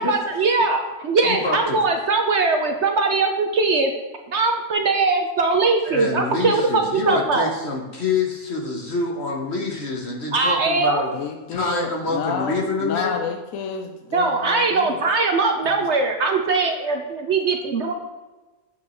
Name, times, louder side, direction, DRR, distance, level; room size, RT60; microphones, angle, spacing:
voice 1, 0.0-3.9 4.3-7.5 10.3-11.0 14.1-17.9, right 3 dB, 60° right, 4 dB, 0.9 m, -21 dB
voice 2, 1.2-1.8 5.8-11.1 11.5-13.2, left 3 dB, 50° left, -1 dB, 1.3 m, -26 dB
voice 3, 11.1-15.0, left 6 dB, 75° left, 4 dB, 1.0 m, -30 dB
8.4 x 7.8 x 3.1 m, 1.2 s
omnidirectional pair, 1.5 m